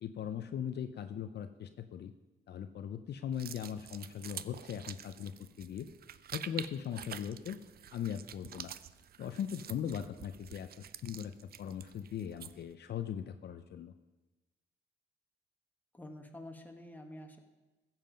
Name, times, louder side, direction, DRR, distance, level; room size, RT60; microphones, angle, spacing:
voice 1, 0.0-2.1 2.5-5.3 5.6-5.9 6.3-7.6 7.9-8.7 9.2-11.3 11.6-13.9, left 9 dB, 55° left, 9 dB, 0.6 m, -39 dB
sound 1, 3.3-12.7, right 9 dB, 50° right, 0.5 m, -48 dB
voice 2, 15.9-17.4, left 1 dB, 10° left, 3 dB, 1.5 m, -48 dB
15.0 x 7.4 x 5.2 m, 1.1 s
cardioid pair, 90°, 20 cm